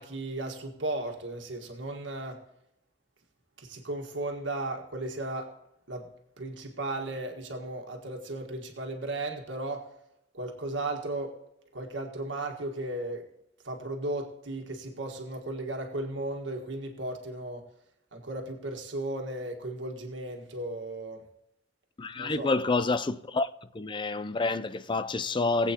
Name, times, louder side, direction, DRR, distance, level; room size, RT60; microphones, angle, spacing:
voice 1, 0.0-2.4 3.6-5.5 5.9-6.1 6.4-9.9 10.3-11.4 11.7-13.3 13.6-17.7 18.1-21.2 22.2-22.5, right 2 dB, 75° right, 1.7 m, -35 dB
voice 2, 22.0-23.5 23.7-25.7, left 3 dB, 25° left, 0.5 m, -28 dB
20.0 x 8.3 x 2.9 m
head